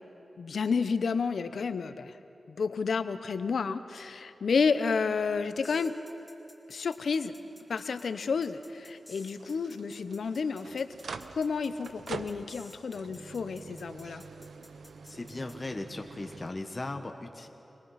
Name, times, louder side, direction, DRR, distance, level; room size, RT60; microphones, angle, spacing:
voice 1, 0.4-2.1 2.5-5.9 6.7-7.3 7.7-10.9 11.3-14.2, left 5 dB, 80° left, 11 dB, 0.8 m, -30 dB
sound 1, 5.6-15.6, left 1 dB, 15° left, 2.9 m, -54 dB
sound 2, 6.8-16.5, right 5 dB, 85° right, 0.7 m, -47 dB
voice 2, 15.0-17.5, left 2 dB, 40° left, 5 dB, 1.3 m, -38 dB
26.5 x 19.0 x 5.8 m, 3.0 s
cardioid pair, 45°, 0 cm